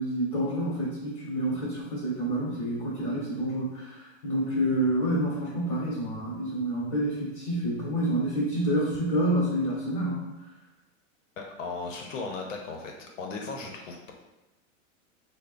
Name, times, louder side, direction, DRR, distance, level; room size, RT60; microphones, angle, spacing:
voice 1, 0.0-10.2, right 1 dB, 25° left, -6 dB, 0.9 m, -28 dB
voice 2, 11.4-14.1, left 4 dB, 70° left, 1 dB, 0.7 m, -37 dB
3.4 x 2.0 x 3.7 m, 1.0 s
supercardioid pair, 175°, 40 cm